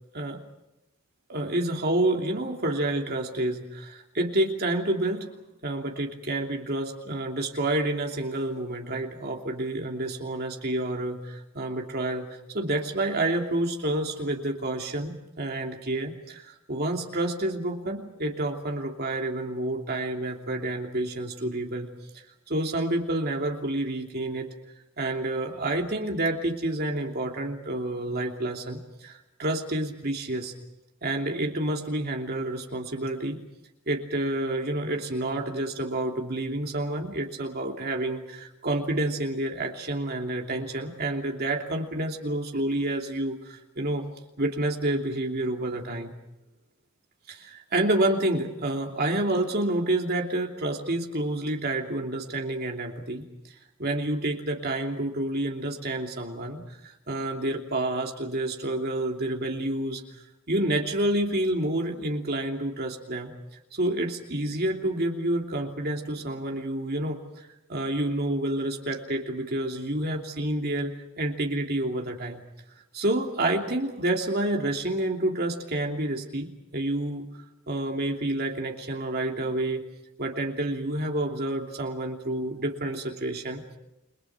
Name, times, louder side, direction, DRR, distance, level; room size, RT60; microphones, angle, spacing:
voice 1, 1.3-5.3 5.6-12.3 12.5-24.5 25.0-30.5 31.0-33.4 33.9-44.0 44.4-46.1 47.3-60.0 60.5-63.3 63.7-72.4 72.9-77.3 77.7-79.9 80.2-83.8, right 1 dB, 45° right, 2 dB, 2.9 m, -29 dB
30.0 x 23.5 x 6.1 m, 0.92 s
head